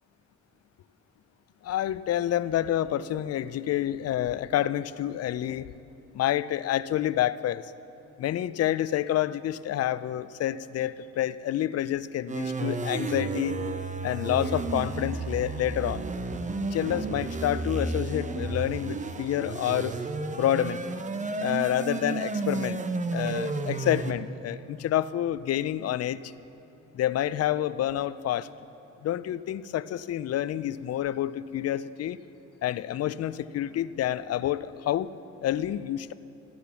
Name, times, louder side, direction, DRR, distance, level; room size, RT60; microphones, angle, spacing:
voice 1, 1.6-5.7 6.1-7.7 8.2-13.5 14.0-16.0 16.7-20.0 20.3-20.8 21.4-22.8 23.1-26.2 26.9-28.5 29.0-32.2 32.6-35.1 35.4-36.1, left 12 dB, 55° left, 16 dB, 0.5 m, -28 dB
sound 1, 12.3-24.1, right 3 dB, 25° right, 0.8 m, -32 dB
14.0 x 10.5 x 6.9 m, 2.8 s
cardioid pair, 90°, 30 cm